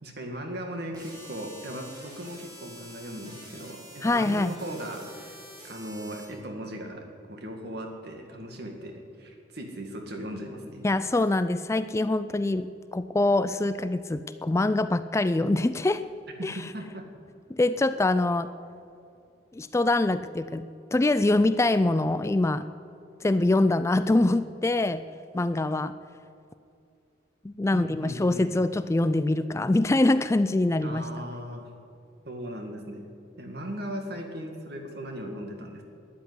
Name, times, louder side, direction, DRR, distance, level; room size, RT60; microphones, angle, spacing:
voice 1, 0.0-10.8 16.4-17.1 27.7-28.5 30.8-31.7 32.3-33.1 33.4-35.8, equal, 55° right, 3 dB, 2.0 m, -38 dB
sound 1, 0.9-6.2, right 1 dB, 20° right, 3.1 m, -47 dB
voice 2, 4.0-4.5 10.8-16.0 16.4-16.6 17.5-18.5 19.5-22.7 23.2-25.0 25.3-25.9 27.4-31.1, left 2 dB, 15° left, 13 dB, 0.3 m, -24 dB
12.5 x 10.5 x 9.7 m, 2.5 s
head